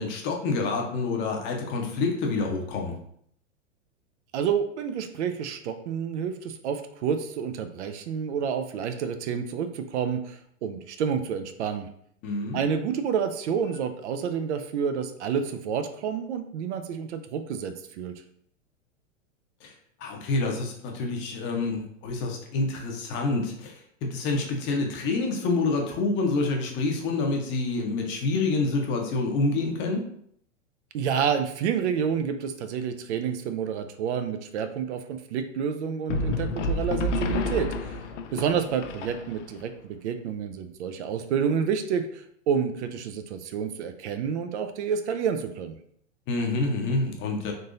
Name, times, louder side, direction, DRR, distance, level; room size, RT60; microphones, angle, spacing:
voice 1, 0.0-2.9 12.2-12.6 19.6-19.7 20.0-30.0 46.3-47.5, left 3 dB, 30° left, 2 dB, 0.7 m, -27 dB
voice 2, 4.3-11.9 12.5-18.1 30.9-38.0 38.3-45.8, right 7 dB, 60° right, 8 dB, 0.5 m, -29 dB
sound 1, 36.1-39.6, left 2 dB, 70° left, 0.6 m, -29 dB
3.7 x 2.7 x 2.5 m, 0.67 s
hypercardioid pair, 120°, 38 cm